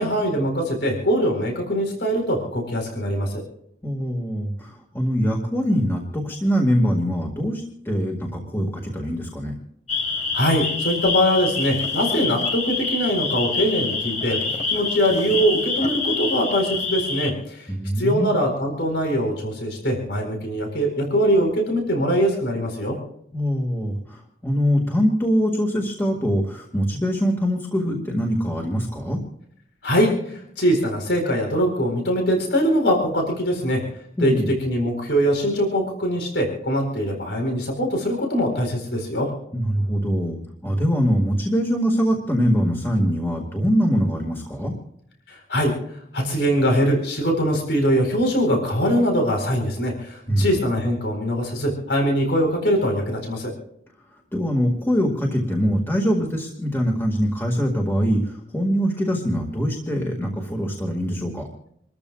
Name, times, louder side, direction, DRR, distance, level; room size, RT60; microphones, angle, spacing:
voice 1, 0.0-3.4 10.3-14.4 14.7-23.0 29.8-33.8 34.2-39.3 45.3-45.7 46.1-53.5, equal, 85° left, 2 dB, 4.4 m, -22 dB
voice 2, 3.8-9.5 17.7-18.3 23.3-29.2 34.2-34.6 39.5-44.7 50.3-50.5 54.3-61.5, equal, 15° left, 0 dB, 1.9 m, -23 dB
sound 1, 9.9-17.3, left 4 dB, 40° left, 1.5 m, -26 dB
28.0 x 14.0 x 2.4 m, 0.70 s
head